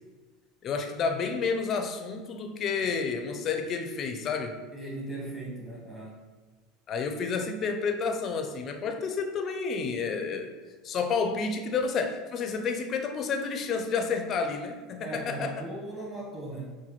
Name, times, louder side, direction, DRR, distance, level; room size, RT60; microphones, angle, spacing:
voice 1, 0.6-4.6 6.9-10.5 10.8-15.5, left 5 dB, 40° left, 6 dB, 0.5 m, -30 dB
voice 2, 4.7-6.2 15.0-16.7, right 2 dB, 10° right, -4 dB, 1.2 m, -38 dB
5.6 x 2.2 x 3.1 m, 1.3 s
supercardioid pair, 100°, 0 cm